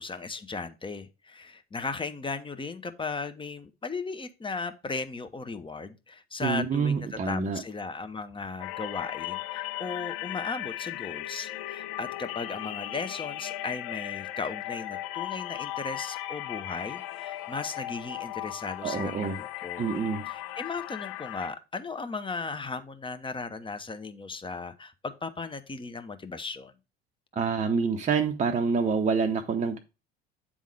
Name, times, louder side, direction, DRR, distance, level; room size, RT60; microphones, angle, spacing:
voice 1, 0.0-19.8 20.3-26.7, left 4 dB, 15° left, 0.8 m, -36 dB
voice 2, 6.4-7.6 18.8-19.4 19.8-20.3 27.4-29.8, right 5 dB, 25° right, 0.7 m, -27 dB
sound 1, 8.6-21.5, left 14 dB, 60° left, 0.6 m, -37 dB
8.4 x 3.7 x 4.7 m
figure-of-eight pair, 60°, 32 cm